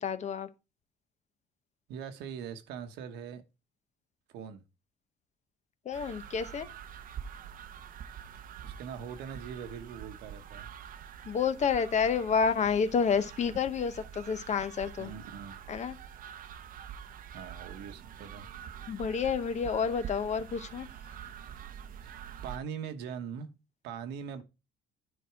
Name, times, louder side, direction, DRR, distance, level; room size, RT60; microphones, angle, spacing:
voice 1, 0.0-0.5 5.9-6.7 11.3-15.1 15.7-16.0 18.9-20.9, left 6 dB, 45° left, 0.9 m, -29 dB
voice 2, 1.9-3.4 4.3-4.6 8.6-10.7 15.0-15.5 17.3-18.5 22.0-23.5 23.8-24.4, right 7 dB, 85° right, 1.2 m, -41 dB
sound 1, 5.9-22.6, right 8 dB, 55° right, 0.8 m, -46 dB
9.9 x 4.6 x 4.6 m
cardioid pair, 110°, 17 cm